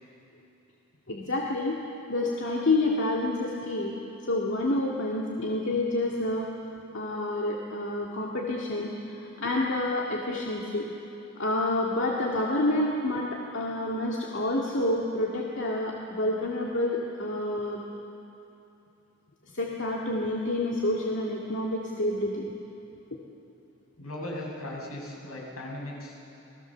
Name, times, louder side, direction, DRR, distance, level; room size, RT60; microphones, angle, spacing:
voice 1, 1.1-1.8 2.1-4.0 4.2-6.5 6.9-10.9 11.4-17.8 19.5-22.5, left 2 dB, 60° left, -2 dB, 2.1 m, -28 dB
voice 2, 24.0-26.2, left 1 dB, 75° left, -2 dB, 6.1 m, -37 dB
28.5 x 20.0 x 7.3 m, 2.9 s
head